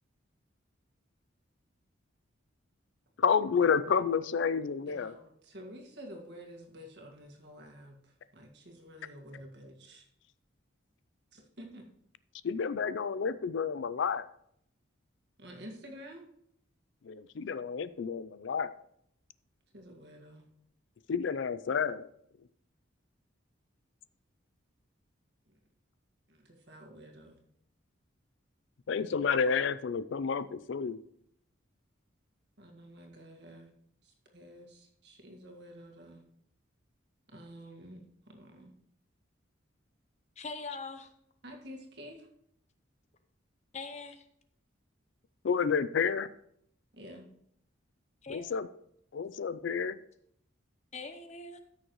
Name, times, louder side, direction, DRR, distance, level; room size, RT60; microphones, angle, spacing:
voice 1, 3.2-5.1 12.4-14.2 17.0-18.7 21.1-22.1 28.9-31.0 45.4-46.3 48.3-48.7 49.1-50.0, left 6 dB, 65° left, 0.4 m, -30 dB
voice 2, 4.8-10.0 11.3-11.9 15.4-16.3 19.7-20.5 26.3-27.4 32.6-33.7 34.0-36.2 37.3-38.7 41.4-42.3 46.9-47.3, equal, 55° right, 1.8 m, -50 dB
voice 3, 40.4-41.1 43.7-44.3 48.2-48.6 50.9-51.6, left 4 dB, 35° left, 0.7 m, -42 dB
14.0 x 6.4 x 3.1 m
head